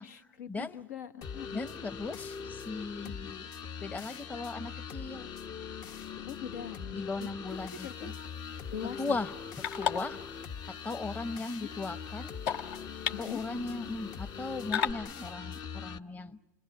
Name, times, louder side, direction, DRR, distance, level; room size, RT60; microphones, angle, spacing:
voice 1, 0.0-1.5 3.0-3.4 6.3-7.3 7.6-8.1 8.7-9.2 11.6-11.8 13.1-13.4, left 8 dB, 90° left, 1.2 m, -42 dB
sound 1, 1.2-16.0, left 6 dB, 50° left, 1.0 m, -42 dB
voice 2, 1.5-3.5 3.8-5.3 6.9-8.1 9.0-10.2 10.7-12.3 13.2-16.4, left 3 dB, 20° left, 0.9 m, -37 dB
sound 2, 7.5-14.9, left 8 dB, 75° left, 1.4 m, -39 dB
29.5 x 20.5 x 7.2 m
supercardioid pair, 100°, 9 cm